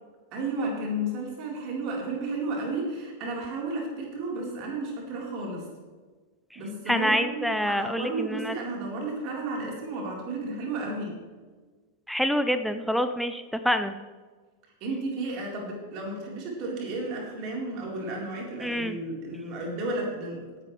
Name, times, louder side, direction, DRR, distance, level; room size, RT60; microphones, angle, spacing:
voice 1, 0.3-5.6 6.5-11.1 14.8-20.6, right 2 dB, 40° right, -2 dB, 4.2 m, -33 dB
voice 2, 6.9-8.6 12.1-13.9 18.6-19.0, equal, ahead, 9 dB, 0.6 m, -26 dB
18.0 x 11.0 x 3.3 m, 1.4 s
figure-of-eight pair, 90°, 0 cm